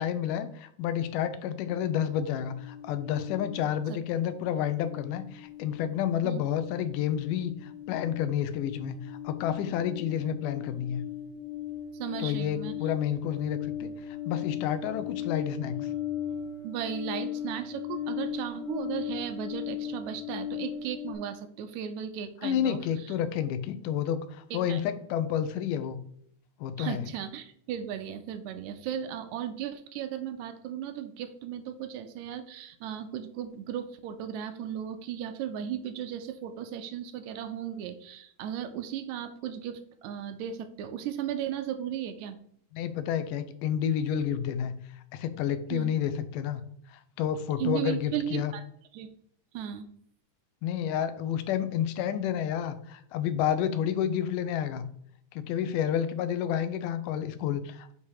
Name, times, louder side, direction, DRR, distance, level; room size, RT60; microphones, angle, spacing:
voice 1, 0.0-11.0 12.2-15.9 22.4-26.0 26.6-27.0 42.7-44.7 45.1-46.6 46.9-48.5 50.6-54.9 55.3-57.9, left 9 dB, 85° left, 11 dB, 2.2 m, -30 dB
sound 1, 1.7-4.0 4.3-21.1, left 9 dB, 55° left, 0.8 m, -38 dB
voice 2, 11.9-12.7 16.6-23.1 24.5-24.8 26.8-42.4 45.7-45.9 47.6-48.6 48.9-49.1 49.5-49.9, right 9 dB, 80° right, 8 dB, 1.7 m, -36 dB
8.2 x 2.9 x 4.7 m, 0.65 s
omnidirectional pair, 3.7 m